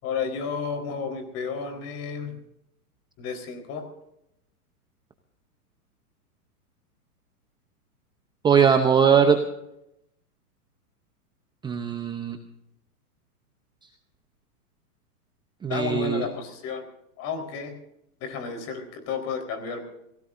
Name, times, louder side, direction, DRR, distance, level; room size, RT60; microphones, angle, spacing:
voice 1, 0.0-2.4 3.2-3.8 15.7-16.8 17.2-17.7 18.2-19.8, left 5 dB, 35° left, 6 dB, 4.2 m, -32 dB
voice 2, 8.4-9.4 11.6-12.4 15.6-16.2, right 7 dB, 10° right, 6 dB, 0.8 m, -20 dB
26.5 x 17.0 x 2.6 m, 0.81 s
hypercardioid pair, 135°, 46 cm